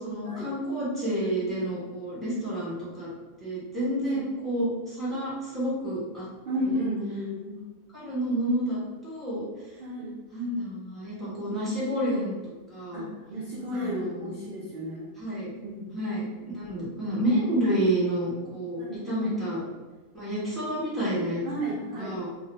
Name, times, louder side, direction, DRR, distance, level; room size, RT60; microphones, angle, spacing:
voice 1, 0.0-3.1 3.4-6.3 6.6-6.8 7.9-9.4 10.3-13.1 13.7-14.3 15.2-15.5 15.9-16.3 16.5-19.6 20.1-21.4 22.0-22.3, right 1 dB, ahead, -9 dB, 0.8 m, -29 dB
voice 2, 6.5-7.6 9.8-10.1 12.9-15.1 15.6-16.0 18.8-19.1 21.4-22.2, equal, 60° right, -7 dB, 0.6 m, -33 dB
2.5 x 2.1 x 2.9 m, 1.3 s
omnidirectional pair, 1.5 m